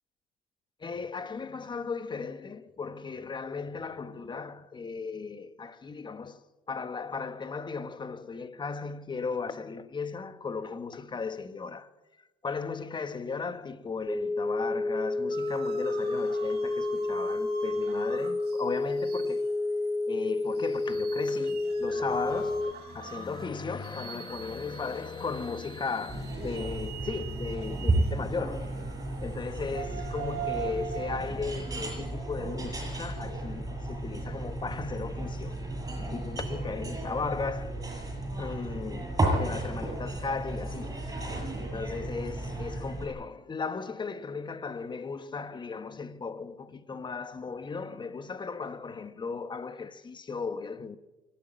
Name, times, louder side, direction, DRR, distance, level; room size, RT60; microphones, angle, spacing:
voice 1, 0.8-11.9 12.4-19.5 20.1-28.7 29.2-35.6 36.1-37.8 38.4-41.0 41.7-51.0, left 4 dB, 25° left, 1.3 m, -36 dB
sound 1, 14.1-22.7, left 2 dB, 5° right, 1.1 m, -30 dB
sound 2, 15.3-31.2, right 10 dB, 75° right, 3.6 m, -44 dB
sound 3, 26.1-43.1, right 2 dB, 20° right, 7.7 m, -33 dB
25.0 x 12.0 x 8.8 m
cardioid pair, 110°, 17 cm